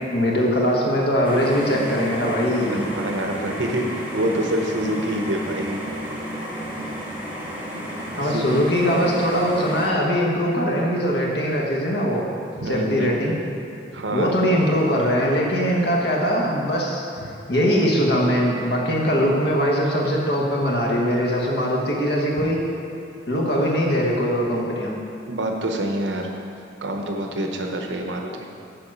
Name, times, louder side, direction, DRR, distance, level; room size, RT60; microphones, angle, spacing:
voice 1, 0.1-2.9 8.1-12.2 12.6-13.3 14.1-17.0 17.5-22.6 23.3-24.9, equal, 60° left, -2 dB, 1.2 m, -21 dB
sound 1, 1.2-9.9, equal, 10° right, 1.1 m, -32 dB
voice 2, 2.7-5.8 8.1-8.5 12.6-13.1 13.9-14.3 17.2-17.3 22.4-22.5 25.3-26.3 26.8-28.3, right 1 dB, 80° right, 2 dB, 0.8 m, -26 dB
6.9 x 4.7 x 6.1 m, 2.7 s
head